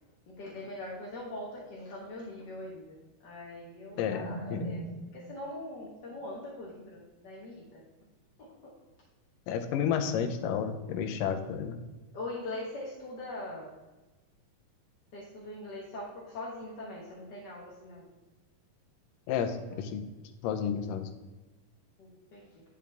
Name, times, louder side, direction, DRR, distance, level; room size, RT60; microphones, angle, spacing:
voice 1, 0.3-3.0 3.2-7.8 8.4-8.5 10.5-11.0 12.1-13.7 15.1-18.0 19.7-19.8 22.0-22.6, left 1 dB, 50° left, -5 dB, 1.3 m, -41 dB
voice 2, 4.0-4.7 9.5-11.8 19.3-20.0 20.4-21.1, left 7 dB, 90° left, 7 dB, 2.4 m, -31 dB
10.5 x 6.1 x 3.5 m, 1.1 s
omnidirectional pair, 3.8 m